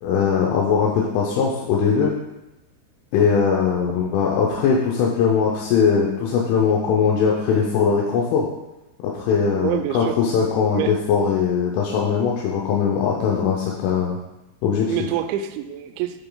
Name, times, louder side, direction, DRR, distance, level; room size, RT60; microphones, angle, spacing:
voice 1, 0.0-2.1 3.1-8.5 9.0-14.2 14.6-14.9, left 6 dB, 85° left, -3 dB, 3.3 m, -20 dB
voice 2, 9.6-10.2 10.7-11.0 14.9-16.2, right 11 dB, 85° right, 7 dB, 2.7 m, -26 dB
9.9 x 6.0 x 2.3 m, 0.96 s
omnidirectional pair, 5.6 m